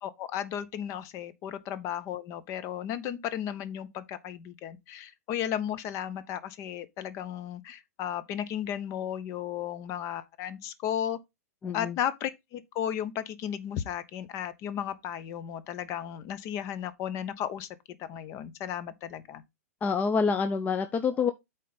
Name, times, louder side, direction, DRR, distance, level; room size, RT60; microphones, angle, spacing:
voice 1, 0.0-11.2 11.7-17.7 18.0-19.4, left 10 dB, 35° left, 0.9 m, -34 dB
voice 2, 11.6-12.0 19.8-21.3, left 5 dB, 20° left, 0.6 m, -27 dB
8.5 x 4.2 x 3.9 m
hypercardioid pair, 115°, 8 cm